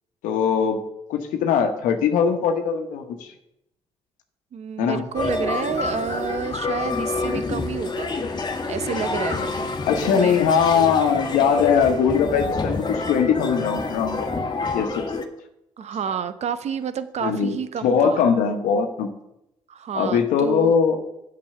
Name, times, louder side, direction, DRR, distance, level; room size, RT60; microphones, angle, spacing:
voice 1, 0.2-0.8 1.1-3.3 4.8-5.0 9.9-15.0 17.2-17.6 17.8-19.1 19.9-21.0, left 6 dB, 80° left, 6 dB, 1.1 m, -21 dB
voice 2, 4.5-8.2 8.7-10.5 15.8-18.3 19.7-20.8, right 7 dB, 55° right, 12 dB, 0.8 m, -30 dB
sound 1, 5.1-15.2, left 3 dB, 35° left, 1.3 m, -28 dB
7.5 x 6.1 x 6.6 m, 0.84 s
supercardioid pair, 60°, 13 cm